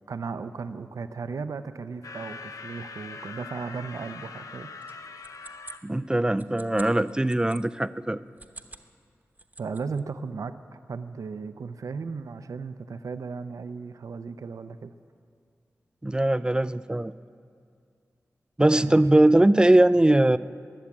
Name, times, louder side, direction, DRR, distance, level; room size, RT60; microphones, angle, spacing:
voice 1, 0.1-4.7 9.6-14.9 18.7-19.0, right 5 dB, 85° right, 10 dB, 0.6 m, -36 dB
sound 1, 2.0-5.8, left 4 dB, 85° left, 0.6 m, -42 dB
sound 2, 4.8-7.6 8.3-8.9 9.2-10.0, right 2 dB, 30° right, 1.0 m, -46 dB
voice 2, 5.8-8.2 16.0-17.1 18.6-20.4, right 1 dB, 15° right, 15 dB, 0.3 m, -20 dB
20.5 x 7.3 x 9.6 m, 2.3 s
wide cardioid pair, 90°, 6 cm